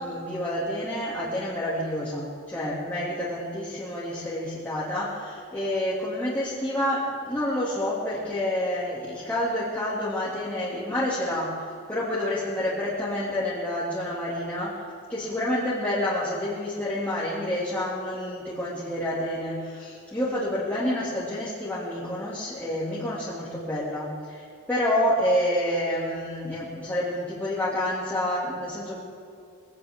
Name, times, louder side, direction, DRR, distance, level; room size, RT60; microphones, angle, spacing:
voice 1, 0.0-29.0, left 1 dB, 10° left, -9 dB, 2.5 m, -28 dB
21.5 x 17.0 x 3.7 m, 2.5 s
head